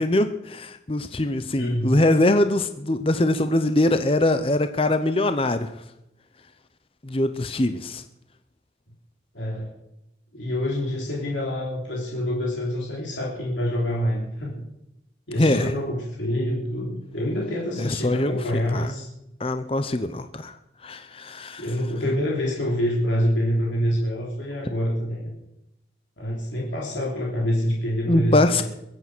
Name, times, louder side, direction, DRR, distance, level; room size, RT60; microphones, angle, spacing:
voice 1, 0.0-5.7 7.0-8.0 15.4-15.7 17.8-18.4 18.7-18.9 19.4-20.5 20.8-21.6 28.1-28.6, left 1 dB, 30° left, 10 dB, 0.7 m, -22 dB
voice 2, 1.6-1.9 9.3-9.7 10.3-14.6 15.3-19.1 21.6-25.3 26.2-28.6, equal, 85° left, -3 dB, 3.3 m, -26 dB
23.0 x 8.4 x 6.1 m, 0.86 s
head